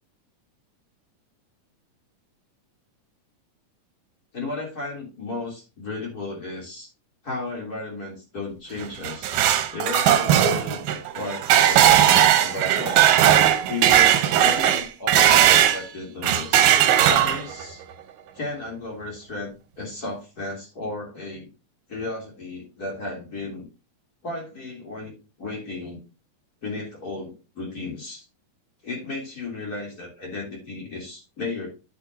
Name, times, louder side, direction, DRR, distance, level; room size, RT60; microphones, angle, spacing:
voice 1, 4.3-6.9 7.2-9.3 9.7-13.2 13.7-16.7 17.1-17.8 18.4-21.5 21.9-23.7 24.2-26.0 26.6-28.3 28.8-31.7, left 3 dB, 30° left, -2 dB, 3.4 m, -34 dB
sound 1, 8.8-15.8 16.2-17.6, right 11 dB, 85° right, 2.4 m, -18 dB
10.0 x 6.8 x 2.8 m, 0.29 s
omnidirectional pair, 3.7 m